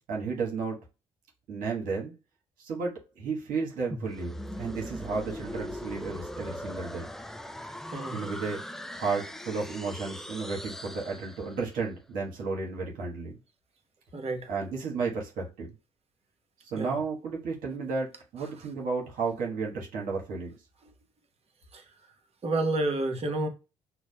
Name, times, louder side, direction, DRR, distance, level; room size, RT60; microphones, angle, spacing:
voice 1, 0.1-0.8 1.5-2.1 2.6-7.1 8.1-8.6 8.9-13.4 14.5-15.7 16.7-20.5, right 4 dB, 65° right, 1.2 m, -33 dB
sound 1, 3.9-11.8, left 1 dB, 5° left, 0.4 m, -40 dB
voice 2, 14.1-14.5 16.8-17.0 21.7-21.8 22.4-23.5, right 2 dB, 40° right, 1.0 m, -29 dB
5.9 x 2.1 x 2.2 m
hypercardioid pair, 50°, 15 cm